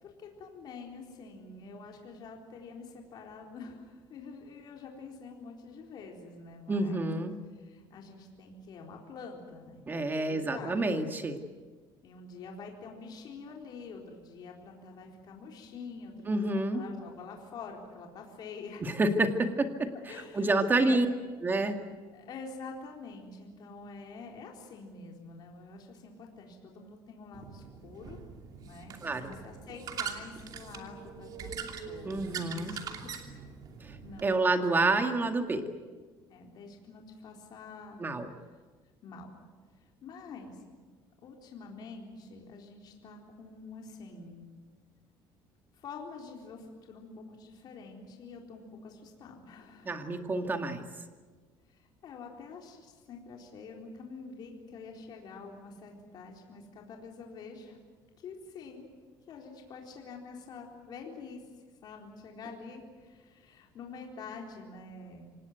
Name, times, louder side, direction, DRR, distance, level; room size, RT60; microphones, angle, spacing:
voice 1, 0.0-7.1 7.5-10.8 12.0-18.9 20.1-21.0 22.1-28.2 28.6-32.8 34.0-34.4 36.3-38.0 39.0-39.3 40.0-40.6 41.2-44.5 45.7-50.1 51.7-57.8 58.2-58.9 59.3-61.5 61.8-65.3, left 4 dB, 50° left, 1 dB, 4.1 m, -47 dB
voice 2, 6.7-7.4 9.9-11.4 16.3-16.8 18.8-21.1 21.4-21.8 29.0-29.3 32.0-32.7 33.8-35.6 38.0-38.3 49.9-50.8, right 2 dB, 20° right, 6 dB, 2.1 m, -28 dB
sound 1, 27.3-34.2, right 6 dB, 45° right, 2.8 m, -42 dB
26.5 x 18.5 x 9.3 m, 1.4 s
cardioid pair, 135°, 9 cm